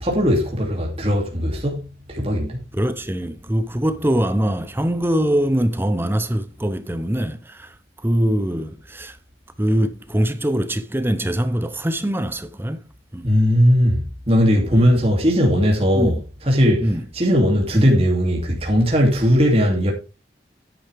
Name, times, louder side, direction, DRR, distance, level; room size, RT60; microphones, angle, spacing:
voice 1, 0.0-1.8 2.1-2.6 13.2-16.2 16.5-16.9 17.1-19.9, equal, 35° right, 2.7 m, -18 dB
voice 2, 2.7-9.2 9.6-13.3 14.7-14.9 15.9-16.1 16.8-17.1 17.7-17.9, right 1 dB, 10° right, 0.7 m, -23 dB
10.0 x 9.0 x 3.5 m
head